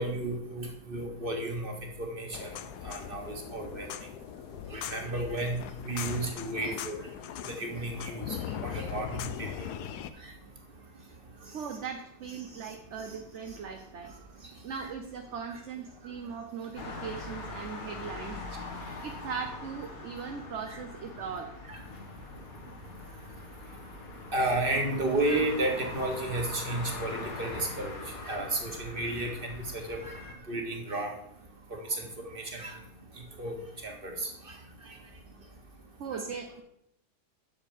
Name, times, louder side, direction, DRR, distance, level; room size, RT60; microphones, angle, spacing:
voice 1, 0.0-2.5 2.8-3.9 4.7-5.6 5.9-7.0 7.6-8.3 8.6-9.7 14.8-14.9 21.7-21.8 24.3-27.5 27.8-27.9 28.3-29.6 29.9-30.0 30.5-31.1 32.0-32.1 32.4-32.7 33.4-33.5 33.8-34.3, right 2 dB, 35° right, 2 dB, 2.0 m, -32 dB
sound 1, 2.3-10.1, left 10 dB, 85° left, 1.2 m, -39 dB
voice 2, 4.5-4.9 6.1-6.2 9.6-9.7 10.8-10.9 11.5-14.3 14.6-18.7 19.0-21.6 23.0-23.9 27.9-28.3 31.6-32.0 36.0-36.6, right 6 dB, 55° right, 5 dB, 1.0 m, -40 dB
sound 2, 16.8-30.3, left 3 dB, 65° left, 1.9 m, -42 dB
10.5 x 7.3 x 4.9 m, 0.76 s
omnidirectional pair, 1.6 m